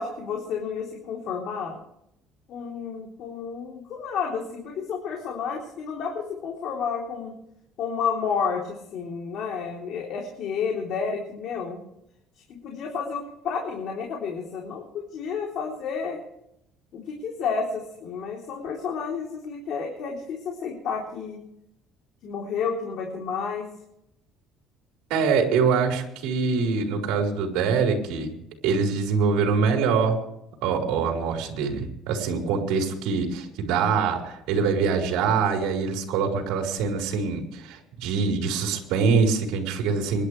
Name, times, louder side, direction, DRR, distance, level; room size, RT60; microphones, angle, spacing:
voice 1, 0.0-1.8 2.5-7.3 7.8-11.8 12.6-16.2 16.9-21.4 22.2-23.7, left 6 dB, 55° left, 0 dB, 3.6 m, -31 dB
voice 2, 25.1-28.3 28.6-30.2 30.6-40.3, right 5 dB, 80° right, 1 dB, 4.6 m, -24 dB
27.0 x 12.0 x 3.4 m, 0.79 s
cardioid pair, 150°, 0 cm